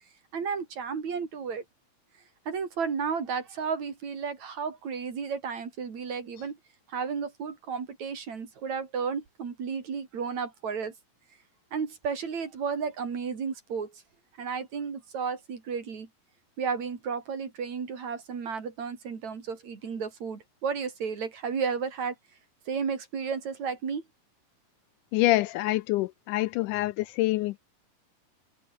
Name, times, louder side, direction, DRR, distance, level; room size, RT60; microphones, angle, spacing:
voice 1, 0.3-1.6 2.5-6.6 6.9-10.9 11.7-13.9 14.4-16.1 16.6-22.1 22.7-24.0, right 6 dB, 55° right, 4.5 m, -33 dB
voice 2, 25.1-27.6, left 17 dB, 80° left, 2.0 m, -26 dB
omnidirectional pair, 3.9 m